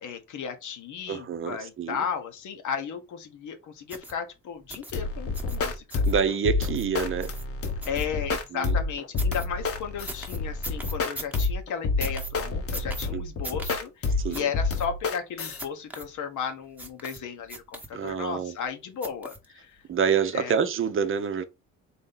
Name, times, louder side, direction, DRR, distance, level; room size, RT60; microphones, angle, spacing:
voice 1, 0.0-6.0 7.8-19.8 20.3-20.5, left 7 dB, 75° left, 1.0 m, -35 dB
voice 2, 1.1-2.0 6.1-7.3 8.5-8.7 13.1-13.6 14.2-14.5 17.9-18.5 19.9-21.4, right 7 dB, 45° right, 0.6 m, -27 dB
sound 1, 3.9-4.1 4.7-4.9 5.3-5.6 5.9-6.1 6.6-6.9 7.2-7.4 7.8-8.4 9.2-9.5 10.1-11.5 12.0-12.3 12.7-13.1 13.4-13.8 14.3-14.4 14.7-14.9 15.6-16.1 16.8-17.2 17.5-18.1 19.0-19.5 19.9-20.0, right 1 dB, 5° right, 1.0 m, -39 dB
sound 2, 4.9-15.6, left 3 dB, 50° left, 0.9 m, -29 dB
4.0 x 2.7 x 3.8 m
cardioid pair, 90°, 30 cm